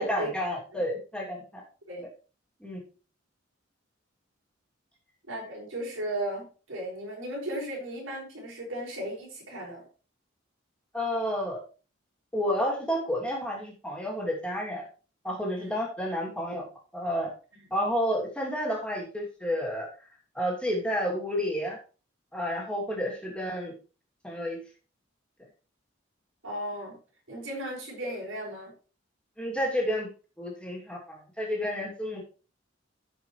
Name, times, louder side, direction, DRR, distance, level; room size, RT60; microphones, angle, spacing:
voice 1, 0.0-1.6 2.6-2.8 10.9-11.6 12.3-14.9 15.2-16.6 16.9-17.3 17.7-19.9 20.3-21.8 22.3-23.7 24.2-24.6 29.4-30.1 30.4-32.2, equal, 5° left, -3 dB, 2.7 m, -30 dB
voice 2, 5.3-9.8 15.5-15.7 17.5-17.6 26.4-27.0 27.3-28.7, right 1 dB, 75° right, -2 dB, 5.0 m, -36 dB
15.5 x 5.4 x 3.2 m, 0.36 s
head